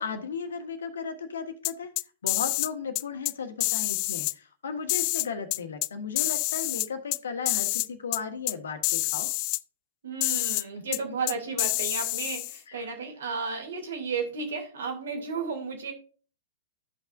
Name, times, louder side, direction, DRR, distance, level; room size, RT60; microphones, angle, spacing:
voice 1, 0.0-1.9 2.2-9.3 10.9-11.0 12.7-12.9, left 5 dB, 70° left, 7 dB, 1.5 m, -35 dB
sound 1, 1.6-2.7 3.0-3.3 3.6-4.3 4.9-5.9 6.2-7.2 7.5-8.2 8.5-8.6 8.8-9.6 10.2-10.6 10.9-11.0 11.3-12.6, left 21 dB, 40° left, 0.3 m, -27 dB
voice 2, 10.0-15.9, right 5 dB, 65° right, 3 dB, 2.6 m, -33 dB
13.5 x 5.8 x 2.5 m, 0.38 s
figure-of-eight pair, 110°, 0 cm